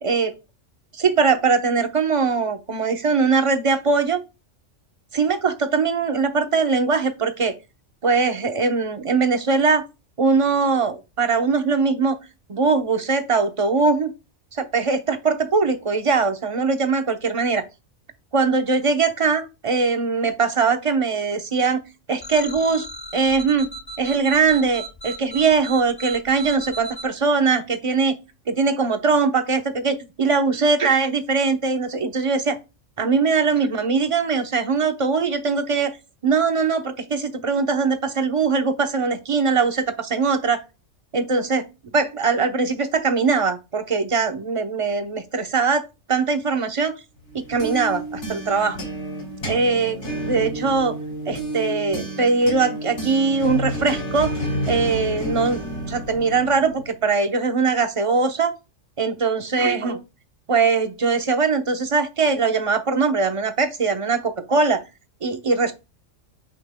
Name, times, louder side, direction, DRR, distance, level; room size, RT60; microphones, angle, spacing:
voice 1, 0.0-0.3 0.9-4.2 5.1-7.5 8.0-9.8 10.2-12.2 12.5-14.1 14.5-17.6 18.3-21.8 22.1-22.9 23.1-23.7 24.0-28.2 28.5-32.6 33.0-36.0 36.2-40.6 41.1-41.6 41.9-46.9 47.3-48.8 49.5-50.0 50.3-50.9 51.3-54.3 54.7-55.6 55.9-58.5 59.0-60.0 60.5-64.8 65.2-65.7, right 4 dB, 30° right, 0.8 m, -21 dB
sound 1, 22.2-27.0, right 2 dB, 20° left, 0.8 m, -36 dB
sound 2, 47.3-56.9, equal, 60° left, 3.0 m, -30 dB
8.8 x 5.8 x 2.2 m
omnidirectional pair, 1.3 m